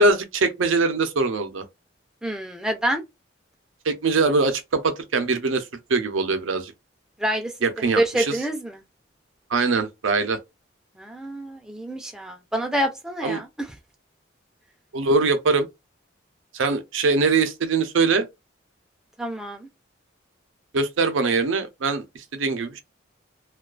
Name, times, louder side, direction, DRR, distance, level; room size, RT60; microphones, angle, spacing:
voice 1, 0.0-1.6 3.8-5.6 5.9-6.7 7.6-8.4 9.5-10.4 13.2-13.4 14.9-15.7 16.5-18.3 20.7-22.8, right 3 dB, 85° right, 0.5 m, -22 dB
voice 2, 2.2-3.0 7.2-8.8 11.0-13.7 19.2-19.7, right 1 dB, 5° right, 0.3 m, -27 dB
2.3 x 2.3 x 2.3 m
head